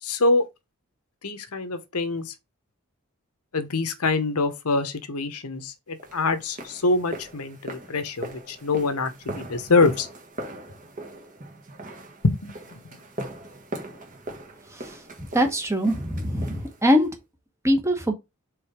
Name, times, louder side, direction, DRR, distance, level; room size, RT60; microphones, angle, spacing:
voice 1, 0.0-0.5 1.2-2.3 3.5-10.1 12.2-12.8, left 3 dB, 85° left, 1.0 m, -25 dB
sound 1, 6.0-17.1, right 1 dB, 35° right, 1.5 m, -40 dB
voice 2, 15.2-17.1 17.6-18.1, equal, 15° right, 1.1 m, -22 dB
4.8 x 4.0 x 4.9 m
head